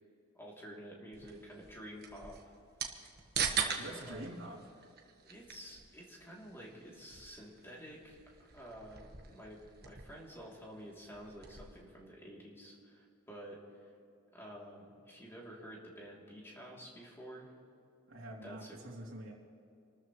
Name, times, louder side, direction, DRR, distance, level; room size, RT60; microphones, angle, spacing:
voice 1, 0.3-2.5 3.3-4.3 5.2-13.9 14.3-17.5 18.4-18.8, equal, 10° left, -3 dB, 3.0 m, -50 dB
sound 1, 1.1-11.8, right 7 dB, 45° right, 1.4 m, -42 dB
voice 2, 3.8-4.6 18.1-19.3, right 1 dB, 70° right, -3 dB, 3.1 m, -45 dB
27.5 x 13.0 x 3.2 m, 2.6 s
head